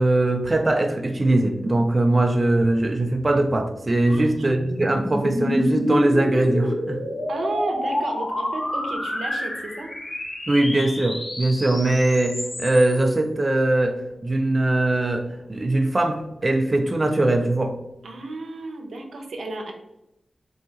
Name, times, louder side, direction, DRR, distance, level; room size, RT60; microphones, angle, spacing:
voice 1, 0.0-7.0 10.5-17.8, right 2 dB, 30° right, 5 dB, 0.3 m, -21 dB
sound 1, 3.6-13.1, left 1 dB, 50° left, 1.1 m, -28 dB
voice 2, 4.1-4.5 7.3-9.9 18.0-19.7, right 2 dB, 85° right, 3 dB, 0.7 m, -32 dB
3.8 x 2.8 x 3.9 m, 0.88 s
wide cardioid pair, 130°, 0 cm